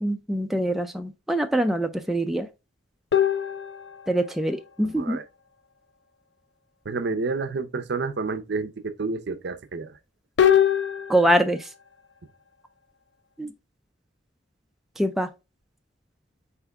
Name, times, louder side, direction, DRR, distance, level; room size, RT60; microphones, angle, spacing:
voice 1, 0.0-2.5 4.1-5.2 11.1-11.7 13.4-13.5 15.0-15.3, right 1 dB, ahead, 0.3 m, -24 dB
sound 1, 3.1-4.3 10.4-11.5, left 10 dB, 65° left, 0.5 m, -22 dB
voice 2, 4.8-5.3 6.8-10.0, right 4 dB, 65° right, 0.6 m, -30 dB
4.4 x 3.5 x 3.4 m
head